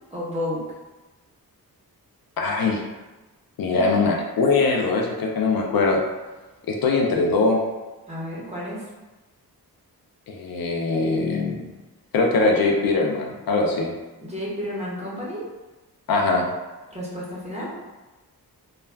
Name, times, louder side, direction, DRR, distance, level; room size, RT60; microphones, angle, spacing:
voice 1, 0.1-0.6 3.7-4.1 8.1-8.8 14.2-15.4 16.9-17.7, left 1 dB, 15° right, -6 dB, 0.8 m, -31 dB
voice 2, 2.4-2.8 3.6-6.0 6.7-7.6 10.3-11.7 12.1-13.9 16.1-16.4, left 3 dB, 65° left, 1 dB, 0.5 m, -21 dB
2.3 x 2.2 x 3.2 m, 1.1 s
wide cardioid pair, 105°, 38 cm